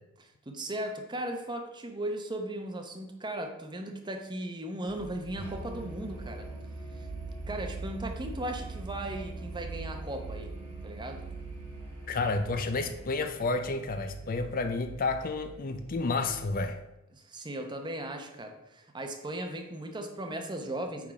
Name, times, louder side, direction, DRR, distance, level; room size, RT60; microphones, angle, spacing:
voice 1, 0.2-6.5 6.9-7.1 7.5-10.5 10.8-11.2 17.1-21.1, right 1 dB, 20° right, 5 dB, 0.8 m, -37 dB
sound 1, 4.9-16.6, right 4 dB, 70° right, 0.5 m, -45 dB
Musical instrument, 5.4-13.2, right 2 dB, 10° left, 1.5 m, -43 dB
voice 2, 12.1-16.8, left 3 dB, 40° left, 8 dB, 0.5 m, -30 dB
8.8 x 3.7 x 4.7 m, 0.91 s
head